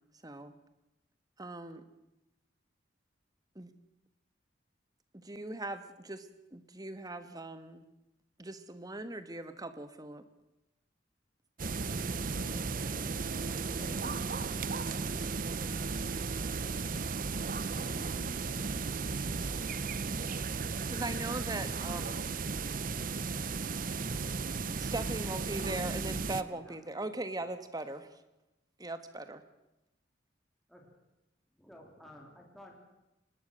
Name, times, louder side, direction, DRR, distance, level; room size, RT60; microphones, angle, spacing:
voice 1, 0.2-0.5 1.4-1.8 3.5-3.7 5.1-7.8 8.4-10.2 20.9-22.2 24.8-28.2 28.8-29.4, right 2 dB, 20° right, 10 dB, 1.4 m, -40 dB
sound 1, 11.6-26.4, right 4 dB, 45° right, 0.7 m, -35 dB
voice 2, 12.2-17.0 17.7-21.0, equal, 30° left, -4 dB, 5.2 m, -53 dB
voice 3, 26.2-26.8 30.7-30.9 31.6-32.8, left 1 dB, ahead, -1 dB, 3.6 m, -53 dB
24.5 x 20.0 x 6.5 m, 0.96 s
head